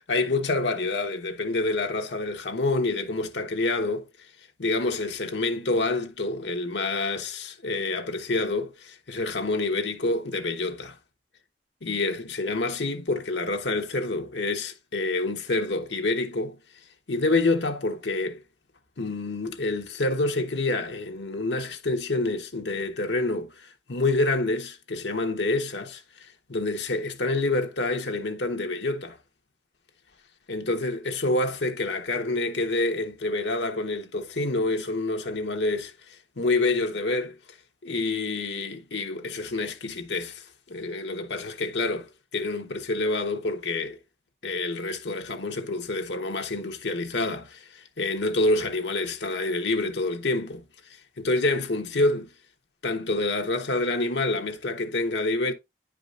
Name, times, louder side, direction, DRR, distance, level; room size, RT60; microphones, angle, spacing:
voice 1, 0.1-4.1 4.6-11.0 11.8-16.6 17.1-18.4 19.0-29.2 30.5-37.4 37.8-44.0 44.4-50.6 51.2-52.3 52.8-55.5, left 2 dB, 85° left, 1.2 m, -27 dB
10.0 x 5.0 x 2.5 m
head